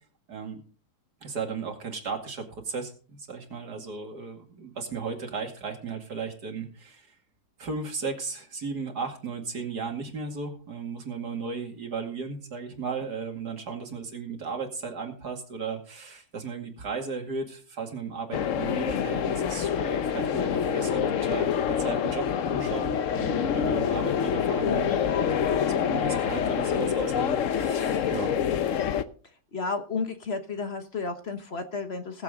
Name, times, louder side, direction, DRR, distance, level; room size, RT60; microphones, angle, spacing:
voice 1, 0.3-0.6 1.2-7.1 7.6-21.5 21.8-28.3, right 5 dB, 85° right, 3 dB, 2.8 m, -35 dB
sound 1, 18.3-29.0, left 8 dB, 60° left, 1.0 m, -26 dB
voice 2, 29.5-32.2, left 4 dB, 45° left, 8 dB, 1.4 m, -32 dB
20.0 x 7.6 x 3.7 m, 0.39 s
omnidirectional pair, 1.7 m